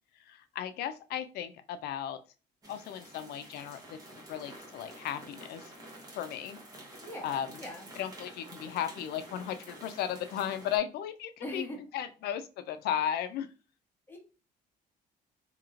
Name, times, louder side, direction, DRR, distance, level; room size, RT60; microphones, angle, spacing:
voice 1, 0.2-2.2 2.7-5.7 6.1-6.6 7.2-7.6 8.0-11.6 11.9-13.5, left 10 dB, 70° left, 11 dB, 0.4 m, -35 dB
sound 1, 2.6-10.8, right 1 dB, 20° right, 1.0 m, -49 dB
voice 2, 7.0-7.9 11.4-11.8 14.1-14.2, left 1 dB, 15° left, 0 dB, 1.0 m, -41 dB
3.0 x 2.8 x 2.4 m, 0.34 s
cardioid pair, 110°, 17 cm